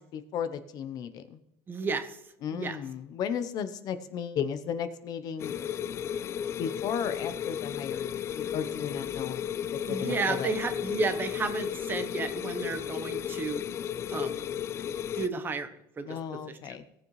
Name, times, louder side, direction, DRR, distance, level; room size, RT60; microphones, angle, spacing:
voice 1, 0.0-1.4 2.4-5.6 6.6-9.4 9.7-10.5 16.1-16.8, left 8 dB, 45° left, 11 dB, 0.8 m, -35 dB
voice 2, 1.7-2.2 2.5-2.8 9.9-13.6 14.1-14.5 15.2-15.7 16.0-16.2 16.5-16.6, right 4 dB, 20° right, 9 dB, 1.0 m, -32 dB
sound 1, 5.4-15.3, left 9 dB, 30° left, 0.3 m, -34 dB
17.5 x 7.2 x 3.2 m, 0.80 s
supercardioid pair, 135°, 9 cm